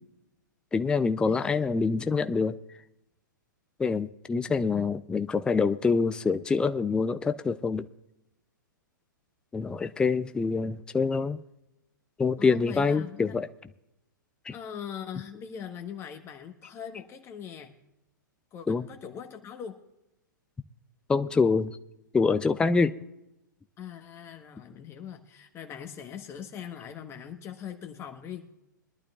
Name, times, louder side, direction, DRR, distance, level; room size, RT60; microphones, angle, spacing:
voice 1, 0.7-2.6 3.8-7.9 9.5-11.4 12.2-13.5 14.5-14.6 18.7-18.9 21.1-21.8 22.1-22.9, left 4 dB, 10° left, 0.4 m, -25 dB
voice 2, 1.3-2.0 12.4-13.4 14.5-17.7 18.5-19.8 23.8-28.5, left 8 dB, 25° left, 1.2 m, -41 dB
22.5 x 11.5 x 2.4 m
figure-of-eight pair, 115°, 11 cm